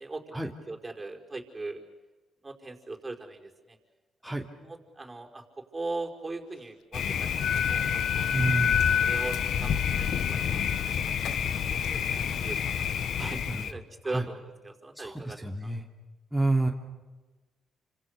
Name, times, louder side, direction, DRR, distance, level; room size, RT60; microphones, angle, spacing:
voice 1, 0.0-1.8 2.4-3.8 4.6-8.2 8.6-11.2 11.5-15.7, right 2 dB, 20° right, 3 dB, 5.2 m, -40 dB
Thunder, 6.9-13.7, left 8 dB, 70° left, 1.4 m, -29 dB
Wind instrument woodwind instrument, 7.4-10.8, left 8 dB, 85° left, 1.0 m, -29 dB
voice 2, 8.3-9.0 13.2-13.7 14.1-14.2 15.0-15.8 16.3-16.7, right 2 dB, ahead, 2 dB, 2.9 m, -29 dB
30.0 x 26.5 x 6.8 m, 1.2 s
cardioid pair, 90°, 0 cm